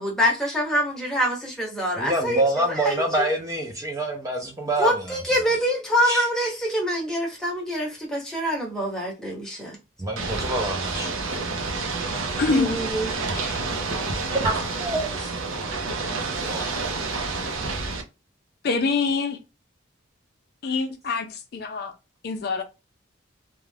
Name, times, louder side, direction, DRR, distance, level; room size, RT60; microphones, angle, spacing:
voice 1, 0.0-3.3 4.8-9.8 12.5-13.2, equal, 5° left, 0.8 m, -25 dB
voice 2, 2.0-5.5 6.0-6.3 10.0-11.1 14.4-15.3 16.4-16.8, right 2 dB, 15° right, 0.4 m, -27 dB
Ocean / Boat Water vehicle, 10.2-18.0, right 3 dB, 90° right, 0.6 m, -29 dB
voice 3, 12.4-12.8 13.3-13.6 18.6-19.4 20.6-21.9 22.2-22.6, left 4 dB, 50° left, 0.4 m, -25 dB
2.3 x 2.1 x 3.2 m
head